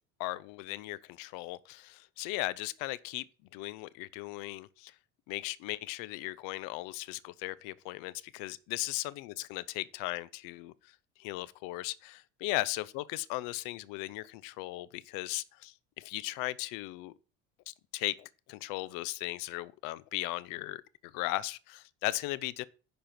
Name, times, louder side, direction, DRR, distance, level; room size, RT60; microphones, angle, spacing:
voice 1, 0.2-3.2 3.5-4.9 5.3-10.7 11.2-17.1 17.7-22.7, left 18 dB, 70° left, 0.7 m, -37 dB
10.5 x 4.4 x 5.9 m
supercardioid pair, 90°, 34 cm